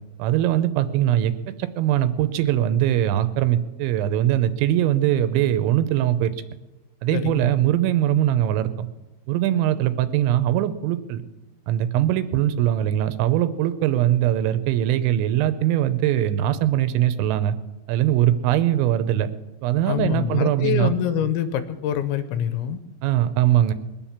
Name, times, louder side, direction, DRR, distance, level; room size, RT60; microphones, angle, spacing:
voice 1, 0.2-1.3 1.6-6.3 7.0-8.9 9.3-11.2 11.7-17.6 17.9-19.3 19.6-20.9 23.0-23.7, right 12 dB, 80° right, 11 dB, 2.9 m, -21 dB
voice 2, 7.1-7.5 19.9-22.8, left 9 dB, 80° left, 11 dB, 2.9 m, -25 dB
21.5 x 7.2 x 7.2 m, 1.1 s
omnidirectional pair, 5.6 m